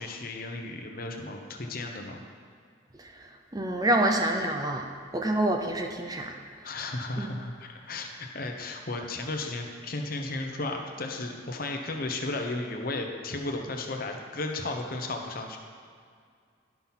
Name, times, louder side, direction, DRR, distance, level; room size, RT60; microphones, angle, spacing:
voice 1, 0.0-2.2 6.6-15.6, left 2 dB, 45° left, 3 dB, 0.9 m, -34 dB
voice 2, 3.5-4.8 5.1-6.3 7.2-7.3, right 1 dB, 20° right, 3 dB, 0.5 m, -26 dB
11.0 x 5.8 x 5.7 m, 2.1 s
head